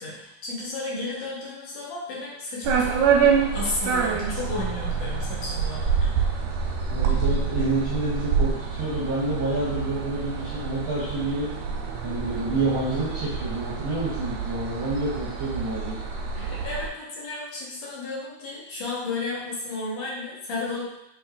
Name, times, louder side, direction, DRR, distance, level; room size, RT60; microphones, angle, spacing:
voice 1, 0.0-3.0 3.5-6.2 16.3-20.8, left 2 dB, 70° left, -6 dB, 2.4 m, -33 dB
sound 1, 2.6-16.9, right 6 dB, 90° right, 2.1 m, -27 dB
voice 2, 6.9-11.5 12.0-16.0, right 2 dB, 70° right, -7 dB, 1.2 m, -28 dB
6.0 x 3.3 x 2.4 m, 0.83 s
omnidirectional pair, 3.4 m